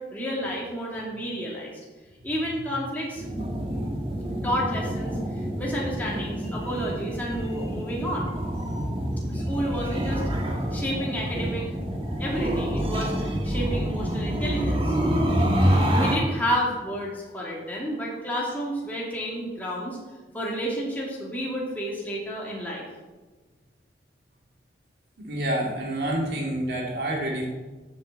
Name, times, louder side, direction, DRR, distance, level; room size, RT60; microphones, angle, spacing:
voice 1, 0.0-1.7 2.2-3.3 4.4-5.1 5.6-8.3 9.3-10.2 10.7-11.7 12.2-14.9 15.9-20.0 20.3-22.8, equal, 10° left, -5 dB, 2.4 m, -30 dB
sound 1, 3.2-16.2, equal, 30° right, 1.9 m, -27 dB
voice 2, 25.2-27.5, right 1 dB, 65° right, -2 dB, 2.5 m, -28 dB
9.2 x 7.4 x 7.6 m, 1.3 s
head